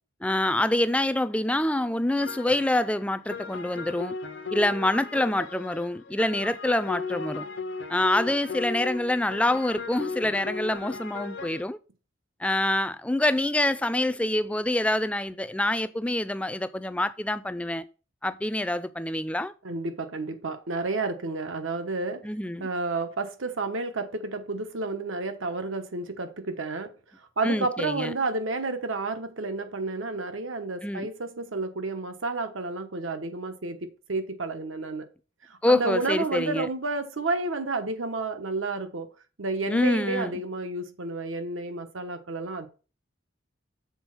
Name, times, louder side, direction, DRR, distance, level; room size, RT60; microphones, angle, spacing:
voice 1, 0.2-4.1 4.5-7.5 7.9-11.8 12.4-17.8 18.2-19.5 22.2-22.7 27.4-28.1 30.8-31.1 35.6-36.7 39.7-40.4, left 1 dB, 5° left, 0.3 m, -26 dB
sound 1, 2.2-11.6, left 4 dB, 65° left, 0.7 m, -36 dB
voice 2, 19.6-22.2 22.6-26.9 27.4-35.1 35.4-39.1 39.4-42.7, right 3 dB, 90° right, 1.1 m, -31 dB
7.1 x 4.1 x 6.0 m
head